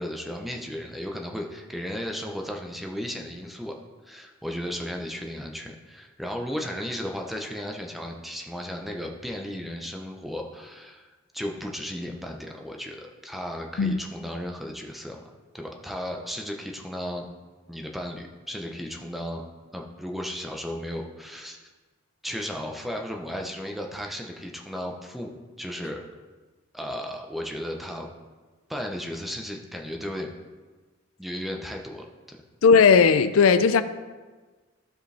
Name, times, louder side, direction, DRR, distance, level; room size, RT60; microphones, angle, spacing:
voice 1, 0.0-3.8 4.0-15.2 15.5-17.3 17.7-19.4 19.7-21.6 22.2-26.0 26.7-28.1 28.7-30.3 31.2-32.4, equal, ahead, 0.7 m, -35 dB
voice 2, 32.6-33.8, left 5 dB, 90° left, 0.4 m, -17 dB
15.0 x 5.0 x 3.4 m
head